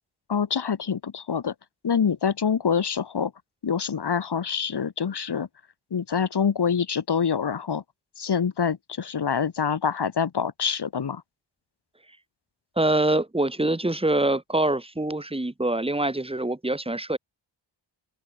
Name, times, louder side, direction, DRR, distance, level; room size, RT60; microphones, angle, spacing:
voice 1, 0.3-1.5 1.8-3.3 3.6-5.5 5.9-7.8 8.2-11.2, left 7 dB, 55° left, 4.9 m, -26 dB
voice 2, 12.8-17.2, right 2 dB, 10° right, 6.3 m, -24 dB
wide cardioid pair, 130°, 48 cm